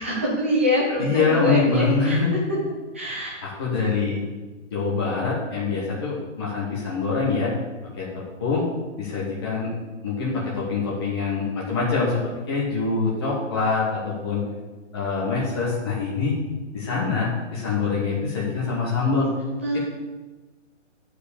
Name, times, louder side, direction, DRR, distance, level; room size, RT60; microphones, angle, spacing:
voice 1, 0.0-2.2 2.9-3.3 3.7-3.9 19.5-19.8, left 1 dB, 10° right, -4 dB, 0.7 m, -24 dB
voice 2, 1.0-2.3 3.4-4.2 4.7-7.5 8.0-8.7 9.0-9.7 10.0-14.4 14.9-16.4 16.7-19.3, left 4 dB, 20° left, -7 dB, 1.2 m, -24 dB
9.6 x 4.9 x 6.8 m, 1.3 s
hypercardioid pair, 180°, 38 cm